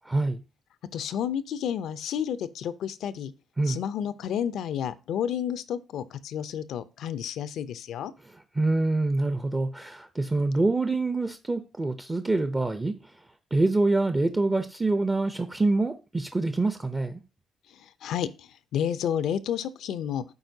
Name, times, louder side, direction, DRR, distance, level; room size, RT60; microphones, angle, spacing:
voice 1, 0.1-0.4 3.6-3.8 8.3-13.1 13.5-17.2, right 2 dB, 20° right, 0.5 m, -26 dB
voice 2, 0.9-3.3 3.7-8.1 17.7-20.2, left 9 dB, 75° left, 0.5 m, -31 dB
12.0 x 4.3 x 2.7 m
cardioid pair, 90°, 0 cm